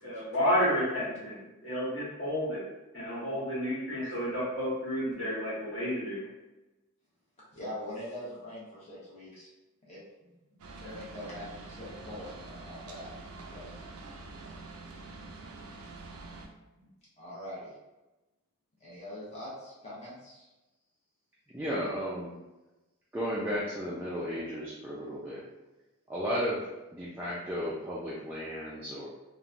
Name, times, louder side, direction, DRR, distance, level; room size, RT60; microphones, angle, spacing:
voice 1, 0.0-2.7 2.9-6.2, equal, 55° left, -9 dB, 1.4 m, -31 dB
voice 2, 7.5-9.5 9.9-13.1 13.5-13.9 16.0-16.4 17.2-17.7 18.8-20.5, left 1 dB, 30° left, -8 dB, 1.0 m, -43 dB
sound 1, 10.6-16.5, right 3 dB, 90° right, 0.4 m, -46 dB
voice 3, 21.5-22.3 23.1-25.4 26.1-26.7 26.9-29.1, equal, 10° right, -7 dB, 0.3 m, -34 dB
3.0 x 2.1 x 2.5 m, 1.0 s
head